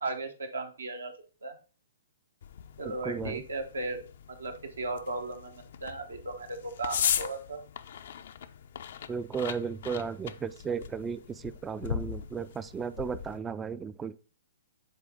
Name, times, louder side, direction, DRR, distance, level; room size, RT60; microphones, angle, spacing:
voice 1, 0.0-1.1 1.4-1.6 2.8-4.0 4.3-7.6, right 2 dB, 85° right, 1.1 m, -36 dB
sound 1, 2.4-13.4, left 9 dB, 65° left, 0.4 m, -38 dB
voice 2, 2.8-3.4 9.1-14.2, right 6 dB, 15° right, 0.3 m, -35 dB
7.3 x 3.7 x 3.6 m
hypercardioid pair, 125°, 0 cm